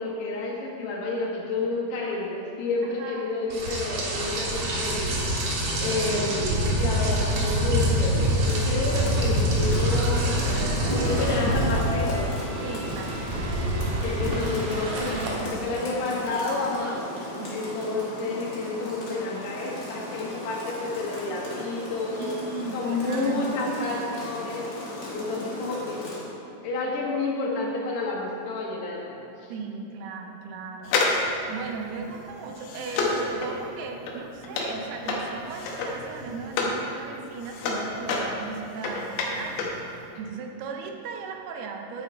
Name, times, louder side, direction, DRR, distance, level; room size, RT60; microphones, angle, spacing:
voice 1, 0.0-5.2 5.4-5.5 5.8-10.4 10.9-12.3 14.0-15.1 15.4-17.0 17.5-22.3 22.7-24.7 25.1-26.0 26.6-29.2 29.4-29.5, left 3 dB, 90° left, -3 dB, 3.6 m, -30 dB
voice 2, 2.8-3.3 9.0-9.4 12.6-13.9 15.1-15.7 17.4-17.7 22.2-23.7 29.5-42.0, right 5 dB, 85° right, 3 dB, 2.8 m, -37 dB
Rain, 3.5-15.3, equal, 60° right, 2.1 m, -26 dB
Rain 2, 7.6-26.3, left 1 dB, 45° left, 1.3 m, -37 dB
sound 1, 30.8-36.8 37.2-39.8 40.1-40.2, left 3 dB, 75° left, 2.8 m, -29 dB
11.0 x 8.6 x 3.2 m, 3.0 s
omnidirectional pair, 4.6 m